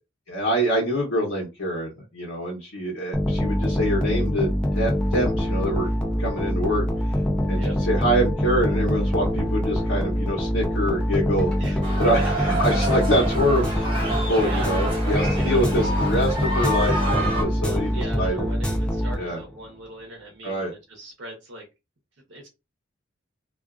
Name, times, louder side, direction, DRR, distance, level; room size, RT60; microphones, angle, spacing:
voice 1, 0.3-4.5 4.7-5.9 6.2-6.8 7.5-7.6 7.9-11.5 12.0-18.5 19.2-19.4 20.4-20.7, equal, 90° left, 0.9 m, -25 dB
sound 1, 3.1-19.6, equal, 5° left, 0.4 m, -24 dB
voice 2, 11.6-12.4 14.1-15.0 15.3-16.3 17.4-21.6 22.3-22.5, right 1 dB, 65° right, 0.8 m, -40 dB
sound 2, 11.8-17.4, right 1 dB, 25° right, 1.2 m, -28 dB
2.5 x 2.4 x 2.3 m
head